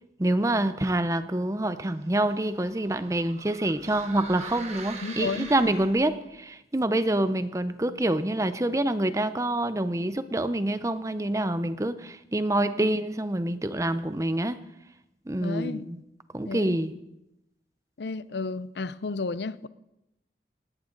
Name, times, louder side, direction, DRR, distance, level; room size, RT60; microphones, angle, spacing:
voice 1, 0.2-14.6 15.3-16.0 16.3-17.0, right 1 dB, 20° right, 12 dB, 0.6 m, -26 dB
sound 1, 1.8-6.3, right 4 dB, 40° right, 1.8 m, -43 dB
voice 2, 5.0-5.5 12.6-12.9 15.4-15.9 16.5-16.8 18.0-19.7, left 4 dB, 75° left, 16 dB, 0.6 m, -32 dB
18.0 x 18.0 x 3.9 m, 0.89 s
head